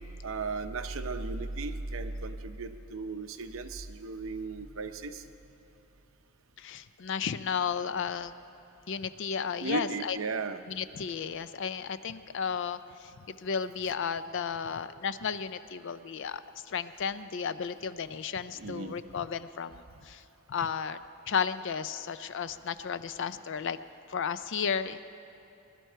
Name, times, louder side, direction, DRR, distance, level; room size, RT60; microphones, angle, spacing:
voice 1, 0.2-5.2 9.6-10.6 18.5-19.0, right 3 dB, 70° right, 9 dB, 0.7 m, -35 dB
voice 2, 6.6-8.3 8.9-10.2 10.7-20.2 20.5-21.0 21.3-23.8 24.1-25.0, left 6 dB, 60° left, 13 dB, 0.5 m, -33 dB
20.5 x 11.5 x 4.5 m, 3.0 s
head